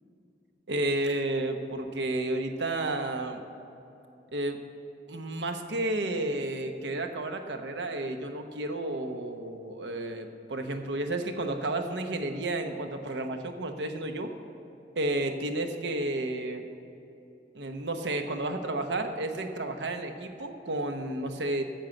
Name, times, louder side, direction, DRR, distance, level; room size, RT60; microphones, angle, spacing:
voice 1, 0.7-3.4 4.3-4.6 5.1-14.3 15.0-16.6 17.5-21.6, right 2 dB, 75° right, 6 dB, 0.9 m, -31 dB
10.5 x 7.2 x 7.7 m, 2.8 s
head